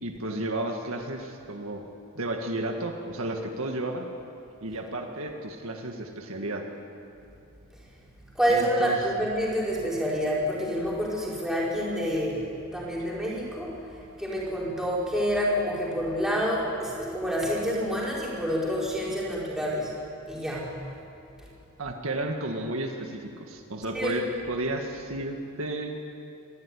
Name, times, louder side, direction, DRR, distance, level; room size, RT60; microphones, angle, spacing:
voice 1, 0.0-1.8 2.2-4.1 4.6-6.7 8.5-9.0 21.8-26.0, right 1 dB, 70° right, 3 dB, 1.9 m, -32 dB
voice 2, 8.3-19.9 20.3-20.7 23.9-24.1, equal, ahead, -6 dB, 4.8 m, -28 dB
26.0 x 13.5 x 9.9 m, 2.7 s
head